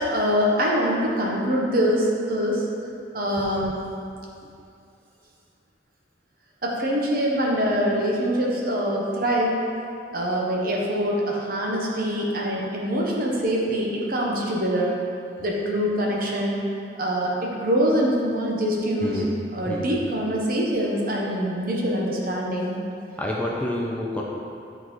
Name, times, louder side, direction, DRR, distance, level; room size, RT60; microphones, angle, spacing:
voice 1, 0.0-2.7 3.1-3.8 6.6-9.6 10.1-15.0 15.4-16.6 17.0-19.2 19.5-22.8, equal, 55° right, -3 dB, 1.0 m, -24 dB
voice 2, 19.0-19.3 19.7-19.9 23.2-24.2, left 1 dB, 10° left, -3 dB, 0.5 m, -29 dB
9.3 x 3.9 x 3.1 m, 2.5 s
head